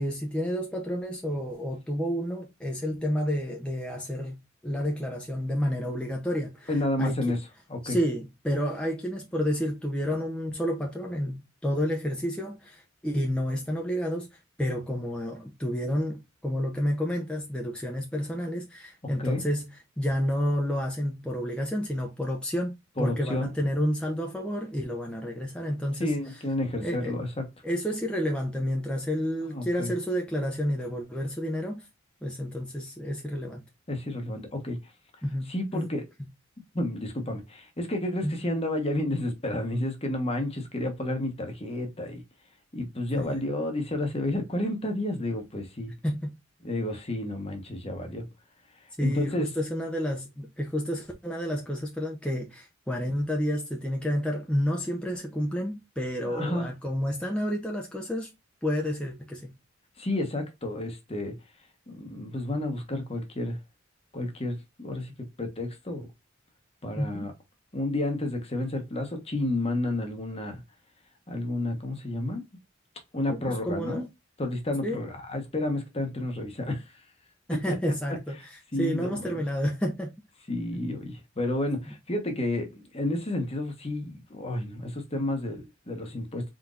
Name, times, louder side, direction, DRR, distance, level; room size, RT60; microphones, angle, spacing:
voice 1, 0.0-4.4 4.6-7.2 7.8-26.1 26.8-27.2 27.6-31.9 32.2-33.6 35.2-35.5 35.7-35.9 38.2-38.4 43.1-43.4 46.0-46.4 49.0-58.3 58.6-59.5 67.0-67.3 73.3-74.1 74.8-75.1 77.5-80.1 81.9-82.0, equal, 5° left, 0.7 m, -30 dB
voice 2, 6.7-7.4 7.7-8.0 19.2-19.4 23.0-23.5 26.0-27.4 29.4-29.9 33.9-34.8 35.5-36.0 36.7-42.2 42.7-45.9 46.6-48.3 49.0-49.5 56.2-56.7 60.0-61.3 61.9-63.6 64.1-65.1 65.4-66.1 66.8-67.3 67.7-70.6 71.3-72.4 73.1-74.1 74.4-76.8 77.7-77.8 78.7-79.4 80.5-86.4, left 1 dB, 30° left, 1.1 m, -31 dB
4.3 x 3.9 x 2.4 m
head